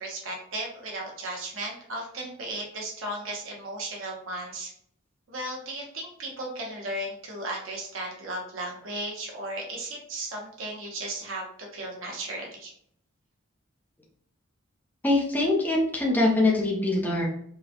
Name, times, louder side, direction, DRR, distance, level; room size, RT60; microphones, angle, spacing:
voice 1, 0.0-4.7 5.3-12.7, right 1 dB, 80° right, -1 dB, 0.9 m, -35 dB
voice 2, 15.0-17.3, left 2 dB, 10° left, -3 dB, 0.7 m, -23 dB
4.8 x 2.2 x 2.8 m, 0.66 s
head